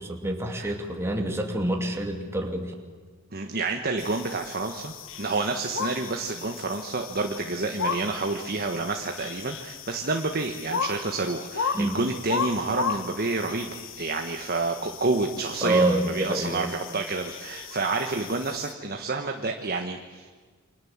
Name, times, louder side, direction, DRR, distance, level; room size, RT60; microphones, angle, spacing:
voice 1, 0.0-2.7 11.7-12.0 15.6-16.7, right 1 dB, 10° right, 2 dB, 2.6 m, -27 dB
voice 2, 3.3-20.3, right 3 dB, 45° right, 4 dB, 1.4 m, -29 dB
sound 1, 4.0-18.7, left 6 dB, 60° left, 1.4 m, -35 dB
28.5 x 25.0 x 7.4 m, 1.5 s
head